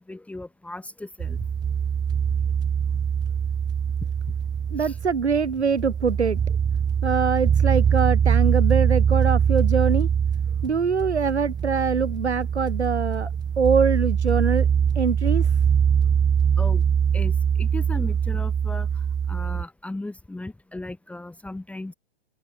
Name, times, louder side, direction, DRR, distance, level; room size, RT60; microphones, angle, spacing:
voice 1, 0.0-1.5 2.4-2.5 4.0-4.1 4.8-5.0 10.5-10.6 16.0-16.1 16.6-16.8 17.1-21.9, left 2 dB, 5° left, 3.3 m, -37 dB
sound 1, 1.2-19.6, right 7 dB, 10° right, 1.1 m, -23 dB
voice 2, 4.7-6.4 7.0-10.1 10.6-13.3 13.6-14.7 14.9-15.6, right 6 dB, 80° right, 6.0 m, -23 dB
open air
hypercardioid pair, 125°, 33 cm